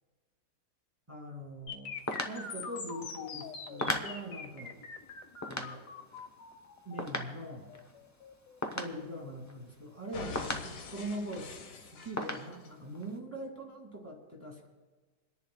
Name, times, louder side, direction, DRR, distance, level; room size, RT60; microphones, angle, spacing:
voice 1, 1.1-2.0 2.2-4.7 5.5-5.9 6.8-7.7 8.7-14.7, right 1 dB, 10° right, 0 dB, 2.1 m, -42 dB
sound 1, 1.7-9.6 10.1-12.7, left 5 dB, 65° left, 1.6 m, -45 dB
sound 2, 1.9-10.0 10.3-11.6 11.8-11.9 12.2-13.2, left 1 dB, 30° left, 0.3 m, -39 dB
28.0 x 10.5 x 2.3 m, 1.3 s
omnidirectional pair, 2.0 m